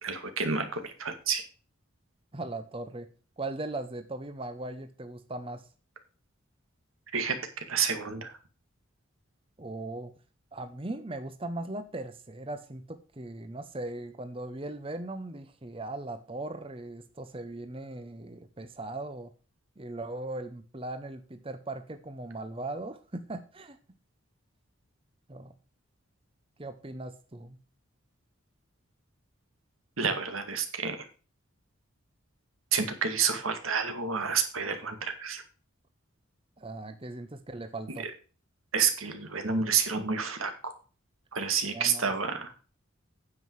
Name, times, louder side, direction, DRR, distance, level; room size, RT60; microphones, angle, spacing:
voice 1, 0.0-1.4 7.1-7.3 7.7-8.4 30.0-31.1 32.7-35.4 38.7-40.7 41.3-42.5, right 6 dB, 90° right, 7 dB, 2.0 m, -29 dB
voice 2, 2.3-3.1 3.4-5.6 9.6-10.1 10.5-19.3 19.8-23.8 25.3-25.5 26.6-27.6 36.6-38.0 41.7-42.1, right 2 dB, 25° right, 9 dB, 0.7 m, -39 dB
9.6 x 7.7 x 4.7 m, 0.36 s
head